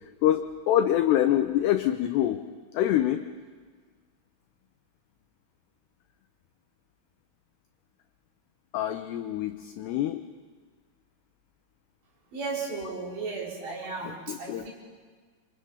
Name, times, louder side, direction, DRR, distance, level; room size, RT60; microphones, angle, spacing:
voice 1, 0.2-2.4 2.7-3.3 8.7-10.2 14.3-14.7, left 12 dB, 90° left, 8 dB, 2.4 m, -25 dB
voice 2, 12.3-14.7, right 4 dB, 60° right, -3 dB, 6.8 m, -35 dB
27.0 x 26.0 x 5.6 m, 1.5 s
omnidirectional pair, 5.9 m